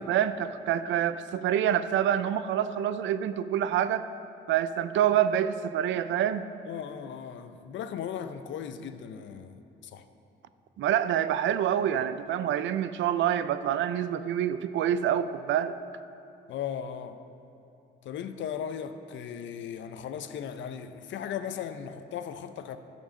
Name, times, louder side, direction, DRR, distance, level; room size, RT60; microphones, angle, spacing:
voice 1, 0.0-4.1 4.5-6.5 10.8-15.8, right 10 dB, 75° right, 0.4 m, -27 dB
voice 2, 6.6-10.1 16.5-17.2 18.0-22.8, left 8 dB, 70° left, 0.6 m, -37 dB
12.5 x 4.4 x 6.3 m
cardioid pair, 90°, 20 cm